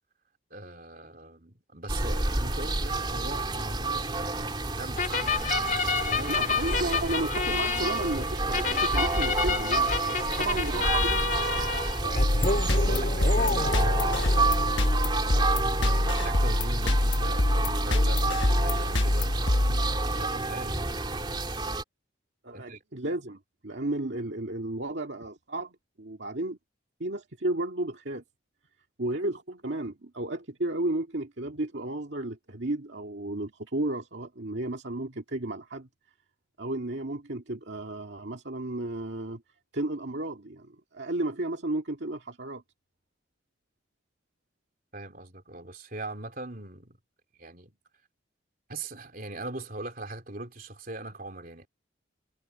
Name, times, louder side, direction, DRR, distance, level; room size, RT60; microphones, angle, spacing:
voice 1, 0.5-5.4 6.1-6.9 12.3-14.6 15.8-19.3 20.0-20.8 22.5-22.8 44.9-47.0 47.4-47.8 48.7-51.7, right 2 dB, 45° right, 3.6 m, -41 dB
sound 1, 1.9-21.8, right 3 dB, 25° right, 3.0 m, -30 dB
sound 2, 5.0-15.3, left 4 dB, 40° left, 3.0 m, -30 dB
voice 2, 6.3-11.3 22.4-26.6 27.0-28.2 29.0-35.9 36.6-39.4 39.7-42.6, right 2 dB, 65° right, 2.1 m, -33 dB
sound 3, 12.2-20.4, left 1 dB, 70° left, 1.3 m, -25 dB
head